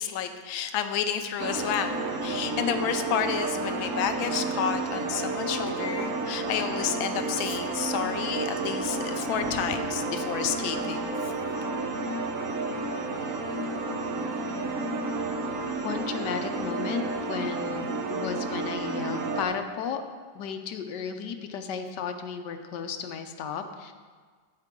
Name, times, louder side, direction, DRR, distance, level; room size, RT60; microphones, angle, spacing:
voice 1, 0.0-11.1, left 8 dB, 85° left, 8 dB, 1.5 m, -30 dB
sound 1, 1.4-19.4, right 3 dB, 55° right, 1.0 m, -31 dB
voice 2, 15.8-20.0 20.3-23.9, left 6 dB, 70° left, 7 dB, 1.2 m, -34 dB
11.5 x 8.5 x 3.7 m, 1.5 s
omnidirectional pair, 2.1 m